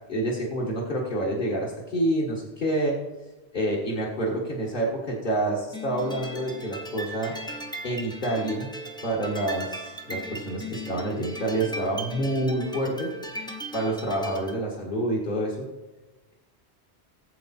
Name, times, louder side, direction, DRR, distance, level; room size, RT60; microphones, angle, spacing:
voice 1, 0.1-3.0 3.5-7.3 7.8-8.7 9.0-13.1 13.7-15.7, right 1 dB, 50° left, -4 dB, 2.0 m, -28 dB
sound 1, 5.7-14.6, right 1 dB, 5° left, 0.8 m, -38 dB
19.0 x 7.8 x 4.3 m, 1.1 s
omnidirectional pair, 1.1 m